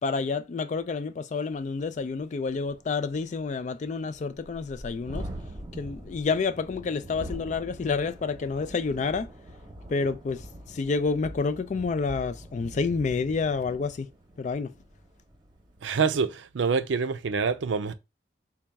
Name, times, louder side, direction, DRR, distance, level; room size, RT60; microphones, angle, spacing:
voice 1, 0.0-5.3 5.7-9.3 9.9-14.1 14.4-14.7, left 4 dB, 40° left, 0.3 m, -29 dB
Thunderstorm, 1.6-1.7 2.1-2.2 2.5-16.1, right 1 dB, 25° right, 0.8 m, -44 dB
voice 2, 15.8-17.9, right 5 dB, 85° right, 0.5 m, -26 dB
4.1 x 2.3 x 3.4 m
head